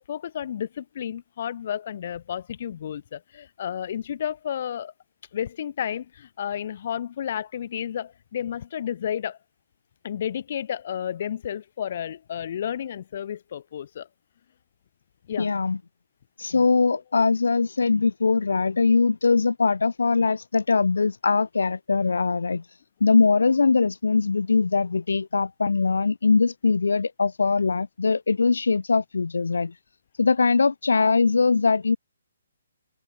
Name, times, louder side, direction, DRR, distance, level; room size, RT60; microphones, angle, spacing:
voice 1, 0.0-4.9 5.3-9.4 10.0-14.1 15.3-15.5, left 9 dB, 50° left, 7.0 m, -32 dB
voice 2, 15.4-15.8 16.4-29.8 30.2-32.0, left 4 dB, 80° left, 1.7 m, -21 dB
open air
hypercardioid pair, 145°, 0 cm